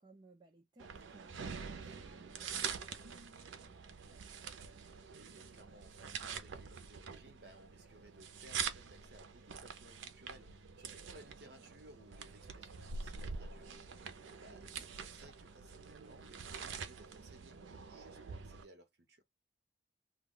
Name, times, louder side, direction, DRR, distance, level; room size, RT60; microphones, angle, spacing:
voice 1, 0.0-3.8 11.2-11.7 14.4-14.9, right 2 dB, 20° right, 0.4 m, -64 dB
sound 1, 0.8-18.6, right 6 dB, 80° right, 0.5 m, -46 dB
voice 2, 4.8-17.6 17.8-19.2, right 1 dB, 55° right, 0.8 m, -60 dB
2.2 x 2.2 x 3.7 m
head